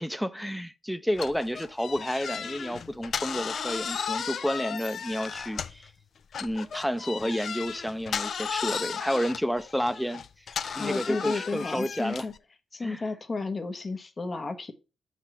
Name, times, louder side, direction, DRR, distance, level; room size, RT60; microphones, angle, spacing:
voice 1, 0.0-5.9 6.4-10.2 10.6-12.3 12.8-13.0, equal, 5° left, 0.5 m, -30 dB
sound 1, 1.1-5.9 6.3-12.4, left 7 dB, 60° left, 0.4 m, -35 dB
voice 2, 10.7-12.3 12.7-14.7, left 3 dB, 40° left, 0.9 m, -32 dB
6.0 x 2.9 x 5.6 m
supercardioid pair, 55°, 0 cm